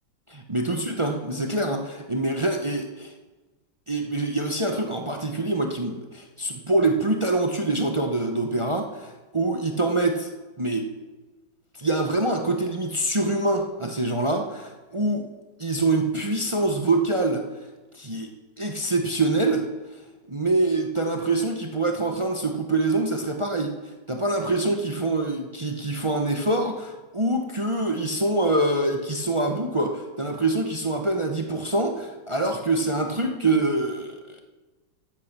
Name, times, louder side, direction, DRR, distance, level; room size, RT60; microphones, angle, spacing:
voice 1, 0.5-3.1 3.9-10.3 10.6-10.9 11.8-15.2 15.6-17.4 17.9-18.3 18.6-19.7 20.3-23.8 24.1-34.4, right 2 dB, 40° right, 3 dB, 0.4 m, -25 dB
13.5 x 9.3 x 6.0 m, 1.2 s
omnidirectional pair, 2.2 m